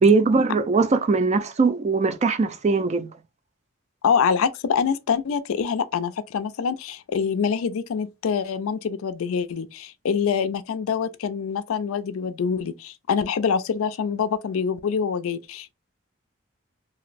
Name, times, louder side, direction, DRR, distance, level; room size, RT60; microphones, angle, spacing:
voice 1, 0.0-3.1, right 4 dB, 35° right, 0.3 m, -20 dB
voice 2, 4.0-15.7, left 6 dB, 85° left, 0.4 m, -25 dB
3.0 x 2.6 x 2.5 m
head